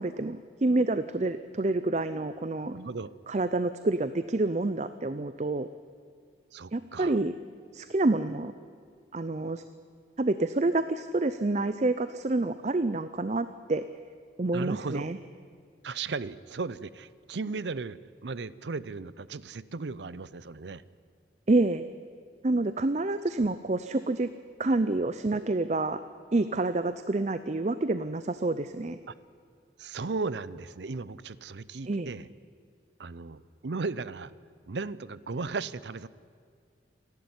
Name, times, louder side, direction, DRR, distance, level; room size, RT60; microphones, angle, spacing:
voice 1, 0.0-2.8 3.3-5.7 6.7-7.3 7.7-8.5 9.1-9.6 10.2-13.8 14.4-15.2 21.5-21.9 22.4-24.3 24.6-26.0 26.3-29.0 31.9-32.1, right 2 dB, 40° right, 12 dB, 0.6 m, -28 dB
voice 2, 2.7-3.1 6.5-7.2 14.5-15.1 15.8-20.8 25.4-25.5 29.1-29.2 29.8-32.3 33.0-34.3 34.7-36.1, right 4 dB, 85° right, 18 dB, 0.6 m, -36 dB
27.0 x 11.5 x 9.6 m, 2.1 s
head